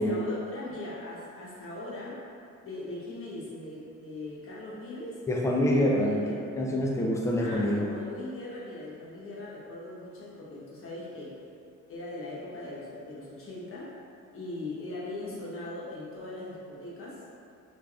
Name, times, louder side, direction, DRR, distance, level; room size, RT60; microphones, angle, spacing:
voice 1, 0.0-2.2 2.6-5.2 5.6-6.5 7.3-11.3 11.9-13.9 14.3-17.2, left 2 dB, 45° left, -7 dB, 0.9 m, -40 dB
voice 2, 5.3-6.2 6.6-7.9, left 1 dB, 10° left, -2 dB, 0.3 m, -26 dB
3.2 x 2.4 x 2.3 m, 2.4 s
cardioid pair, 90°, 30 cm